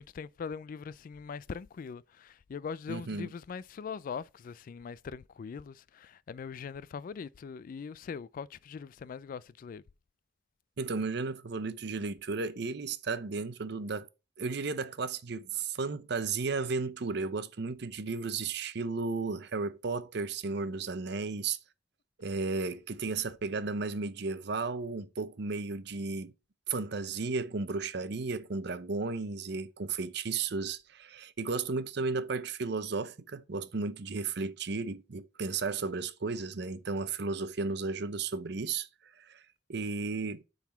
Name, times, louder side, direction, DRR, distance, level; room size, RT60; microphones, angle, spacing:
voice 1, 0.0-9.8, left 6 dB, 50° left, 0.3 m, -41 dB
voice 2, 2.9-3.3 10.8-14.1 14.4-21.6 22.2-26.3 26.7-38.9 39.2-39.4 39.7-40.4, right 4 dB, 65° right, 0.7 m, -34 dB
7.1 x 4.0 x 5.6 m
head